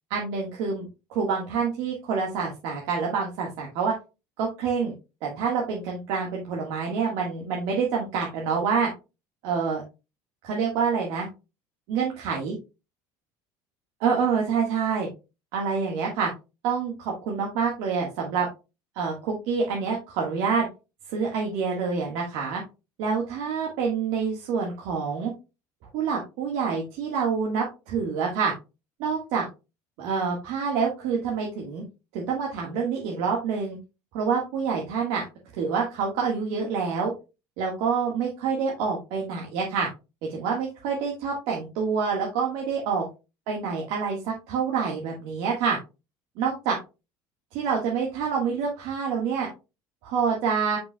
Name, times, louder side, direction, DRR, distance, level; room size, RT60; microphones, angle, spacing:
voice 1, 0.1-3.9 4.4-4.9 5.2-8.9 9.4-9.8 10.4-11.3 11.9-12.6 14.0-15.1 15.5-16.3 16.6-18.5 18.9-20.7 21.1-22.6 23.0-25.3 25.9-28.5 29.0-29.4 30.0-31.8 32.1-33.8 34.1-35.2 35.6-37.1 37.6-39.9 40.3-43.0 43.5-45.8 46.4-46.8 47.5-49.5 50.0-50.8, right 5 dB, 65° right, -1 dB, 1.6 m, -27 dB
8.8 x 5.3 x 2.3 m, 0.28 s
cardioid pair, 180°, 9 cm